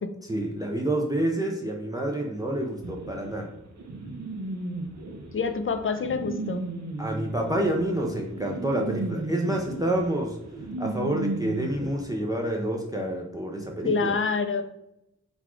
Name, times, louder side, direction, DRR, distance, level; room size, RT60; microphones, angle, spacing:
voice 1, 0.3-3.5 7.0-10.4 10.8-14.1, right 1 dB, 10° right, 1 dB, 0.5 m, -28 dB
sound 1, 2.8-11.9, right 2 dB, 60° right, 0.7 m, -35 dB
voice 2, 5.3-6.7 13.8-14.6, left 4 dB, 45° left, 8 dB, 0.5 m, -26 dB
4.0 x 2.3 x 4.4 m, 0.84 s
wide cardioid pair, 110°, 31 cm